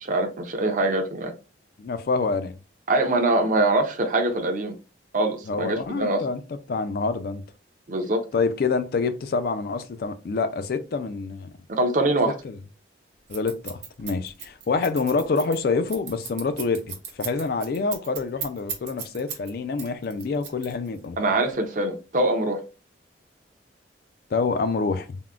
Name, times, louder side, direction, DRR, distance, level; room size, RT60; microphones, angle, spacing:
voice 1, 0.0-1.3 2.9-4.7 5.1-6.3 7.9-8.2 11.7-12.3 21.2-22.6, right 2 dB, 45° right, 0.5 m, -23 dB
voice 2, 1.8-2.6 5.5-6.4 6.7-7.4 8.3-11.5 12.4-12.6 13.3-21.2 24.3-25.2, left 4 dB, 55° left, 0.3 m, -26 dB
Scissors, 13.3-19.5 19.8-21.0, right 7 dB, 65° right, 0.9 m, -36 dB
3.5 x 2.1 x 2.3 m
head